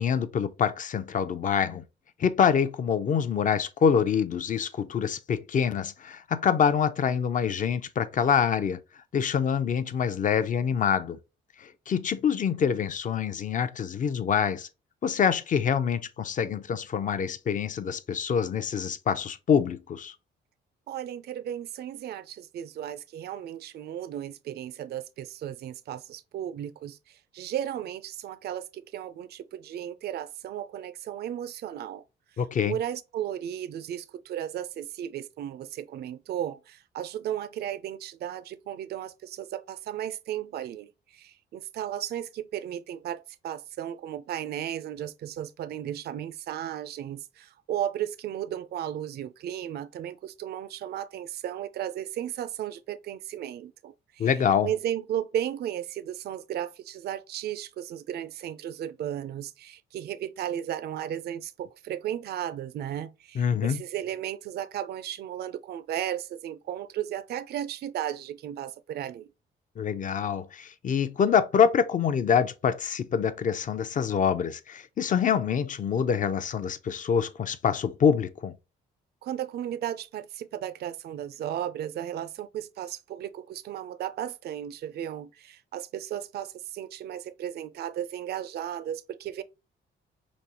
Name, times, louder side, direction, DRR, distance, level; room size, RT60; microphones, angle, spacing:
voice 1, 0.0-1.8 2.2-8.8 9.1-11.2 11.6-14.7 15.0-20.1 32.4-32.8 54.2-54.7 63.4-63.8 69.8-78.5, left 7 dB, 40° left, 0.5 m, -25 dB
voice 2, 20.9-32.0 32.7-54.3 54.6-69.3 79.2-89.4, right 11 dB, 55° right, 0.4 m, -35 dB
5.0 x 2.0 x 2.9 m
cardioid pair, 90°, 20 cm